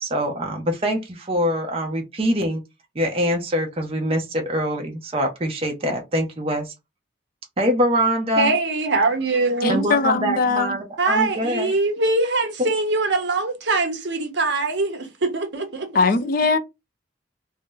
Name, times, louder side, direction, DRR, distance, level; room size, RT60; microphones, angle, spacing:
voice 1, 0.0-2.6 3.0-6.7 7.6-8.5 9.7-11.7 12.6-12.7, equal, 30° right, 0.5 m, -24 dB
voice 2, 8.4-10.2 11.0-15.9, right 3 dB, 65° right, 0.8 m, -23 dB
voice 3, 9.6-10.8 15.9-16.6, left 4 dB, 50° left, 0.4 m, -20 dB
2.7 x 2.0 x 3.6 m
head